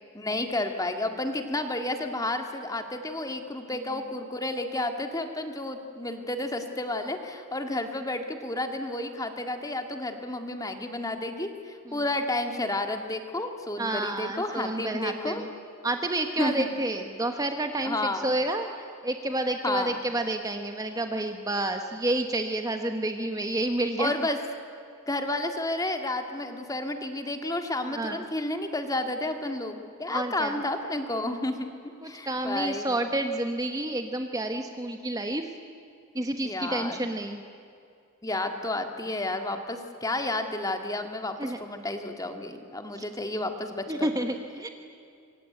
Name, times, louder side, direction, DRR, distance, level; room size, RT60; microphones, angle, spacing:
voice 1, 0.1-15.4 16.4-16.7 17.8-18.3 19.6-20.0 24.0-24.4 25.1-31.7 32.0-32.9 36.4-37.0 38.2-44.1, left 2 dB, 15° left, 6 dB, 1.9 m, -31 dB
voice 2, 13.8-15.5 15.8-18.0 18.2-24.1 27.9-28.2 30.1-30.6 32.0-35.5 36.1-37.4 41.4-41.6 43.0-43.1 43.9-44.7, right 1 dB, 15° right, 6 dB, 1.1 m, -29 dB
25.5 x 24.0 x 9.0 m, 2.5 s
head